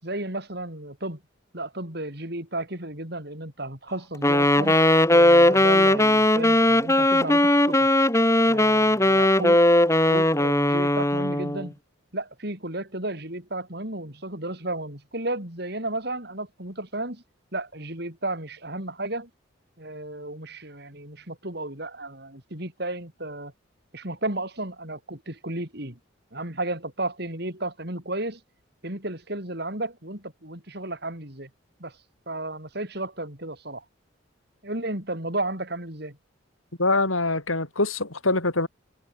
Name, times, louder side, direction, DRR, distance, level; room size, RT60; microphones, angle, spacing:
voice 1, 0.0-1.2 1.5-4.8 5.1-7.9 8.5-9.6 10.1-11.7 12.1-17.2 17.5-19.3 19.8-23.5 23.9-26.0 26.3-28.4 28.8-31.5 31.8-31.9 32.3-33.8 34.6-36.2, right 2 dB, 55° right, 6.1 m, -33 dB
Wind instrument woodwind instrument, 4.2-11.7, left 1 dB, 15° left, 3.4 m, -19 dB
voice 2, 36.8-38.7, left 2 dB, 90° left, 5.3 m, -24 dB
head